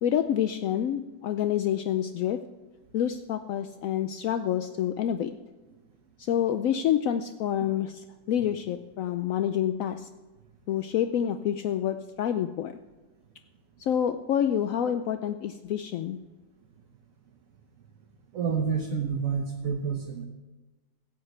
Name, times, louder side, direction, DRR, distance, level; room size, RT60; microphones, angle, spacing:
voice 1, 0.0-2.4 2.9-5.3 6.2-10.1 10.7-12.8 13.8-16.2, left 10 dB, 75° left, 9 dB, 0.7 m, -28 dB
voice 2, 18.3-20.2, right 6 dB, 50° right, 2 dB, 1.3 m, -29 dB
16.0 x 6.5 x 7.9 m, 1.2 s
omnidirectional pair, 2.0 m